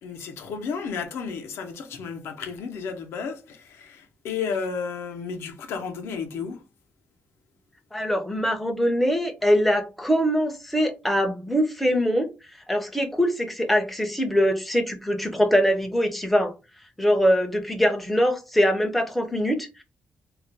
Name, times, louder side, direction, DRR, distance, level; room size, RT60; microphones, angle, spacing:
voice 1, 0.0-6.6, left 5 dB, 85° left, 0.5 m, -32 dB
voice 2, 7.9-16.5 17.0-19.8, equal, ahead, 0.4 m, -23 dB
2.3 x 2.1 x 3.9 m
wide cardioid pair, 170°, 4 cm